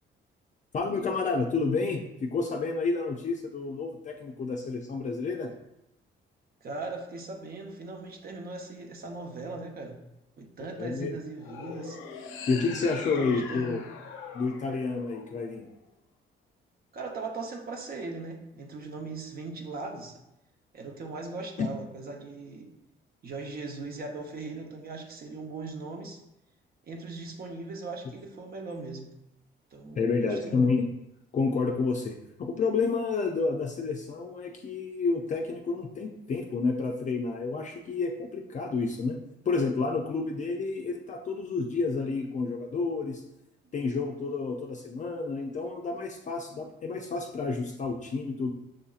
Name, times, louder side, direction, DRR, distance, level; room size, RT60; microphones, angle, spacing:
voice 1, 0.7-5.5 10.8-11.2 12.5-13.8 14.3-15.7 21.6-21.7 30.0-30.9 31.3-39.2 39.5-43.2 43.7-48.5, left 4 dB, 40° left, 1 dB, 0.4 m, -30 dB
voice 2, 6.6-10.0 10.4-12.0 12.7-13.8 16.9-20.2 20.7-22.7 23.2-26.2 26.8-29.1 29.7-30.7, right 3 dB, 50° right, 2 dB, 0.8 m, -39 dB
sound 1, 11.4-15.7, left 5 dB, 85° left, 0.6 m, -41 dB
6.3 x 2.7 x 2.4 m, 0.87 s
cardioid pair, 90°, 20 cm